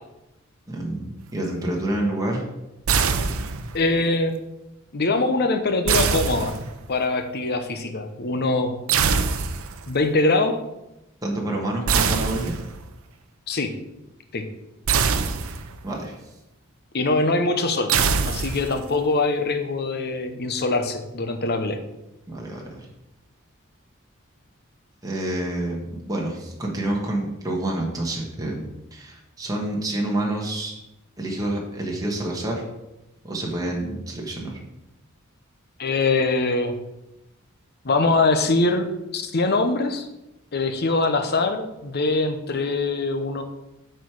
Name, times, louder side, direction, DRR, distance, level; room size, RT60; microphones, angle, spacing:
voice 1, 0.7-2.4 11.2-12.5 15.8-16.1 22.3-22.9 25.0-30.7 31.2-32.6 33.2-34.6, right 1 dB, 15° right, -2 dB, 1.3 m, -28 dB
sound 1, 2.9-3.8 5.9-7.0 8.9-9.9 11.9-12.9 14.9-15.9 17.9-18.9, right 5 dB, 80° right, 0.6 m, -23 dB
voice 2, 3.7-4.4 4.9-6.5 6.9-8.7 9.9-10.6 13.5-13.7 14.3-14.5 16.9-17.9 18.2-21.8 35.8-36.7 37.8-38.9 39.1-40.1 40.5-43.4, left 3 dB, 50° left, 7 dB, 0.8 m, -23 dB
8.3 x 4.6 x 4.7 m, 0.93 s
head